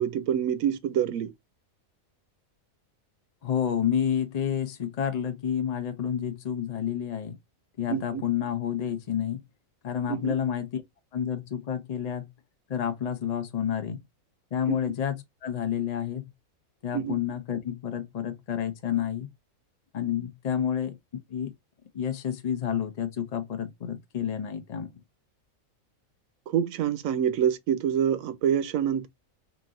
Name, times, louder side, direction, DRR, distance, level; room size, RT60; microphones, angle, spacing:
voice 1, 0.0-1.3 7.9-8.2 10.1-10.3 14.7-14.9 16.9-17.2 26.5-29.1, right 9 dB, 80° right, 1.0 m, -26 dB
voice 2, 3.4-7.4 7.8-9.4 9.8-10.8 11.1-12.3 12.7-14.0 14.5-16.3 16.8-19.3 19.9-21.0 21.3-21.5 21.9-24.9, left 9 dB, 65° left, 0.4 m, -29 dB
4.0 x 2.5 x 3.7 m
omnidirectional pair, 1.4 m